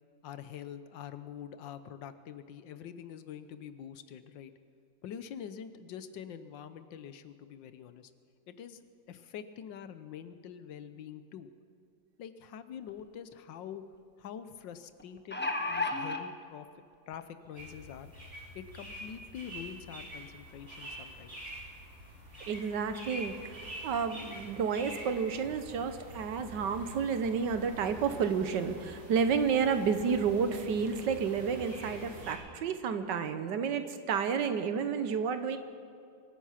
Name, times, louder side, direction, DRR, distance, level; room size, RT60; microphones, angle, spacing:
voice 1, 0.2-4.5 5.0-8.1 8.5-11.5 12.2-13.8 14.2-16.7 17.1-18.1 18.5-21.4, left 8 dB, 75° left, 11 dB, 1.5 m, -45 dB
sound 1, 12.9-13.0 13.3-13.4 15.0-16.2 17.1-17.2 17.6-17.7, left 2 dB, 15° left, 0.4 m, -32 dB
sound 2, 17.5-32.3, right 1 dB, 30° right, 3.8 m, -46 dB
voice 2, 22.5-23.6 23.8-35.6, right 6 dB, 70° right, 9 dB, 1.5 m, -31 dB
24.0 x 9.6 x 5.8 m, 2.5 s
omnidirectional pair, 2.1 m